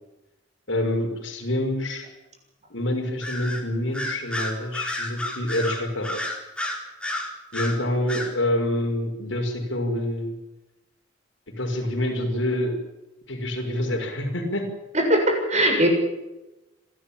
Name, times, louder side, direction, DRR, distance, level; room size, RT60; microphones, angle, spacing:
voice 1, 0.7-2.1 2.7-6.2 7.5-10.3 11.6-12.8 13.3-14.6, left 1 dB, 70° left, 3 dB, 5.8 m, -26 dB
Bird vocalization bird call bird song, 3.2-3.6 3.9-7.8 8.1-8.3, left 1 dB, 5° left, 4.0 m, -30 dB
voice 2, 14.9-15.9, right 1 dB, 35° right, 3 dB, 7.2 m, -20 dB
29.5 x 13.0 x 8.9 m, 1.0 s
head